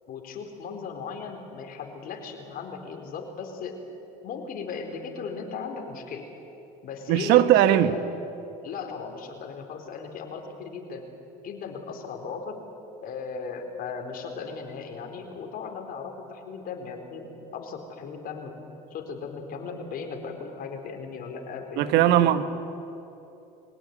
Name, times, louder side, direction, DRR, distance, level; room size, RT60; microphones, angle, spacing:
voice 1, 0.1-3.8 4.2-6.3 6.8-8.0 8.6-11.1 11.4-12.6 13.0-18.5 18.9-22.4, left 5 dB, 55° left, 3 dB, 4.1 m, -37 dB
voice 2, 7.1-7.9 21.8-22.4, right 12 dB, 70° right, 12 dB, 1.3 m, -19 dB
23.5 x 17.5 x 9.6 m, 2.9 s
supercardioid pair, 100°, 18 cm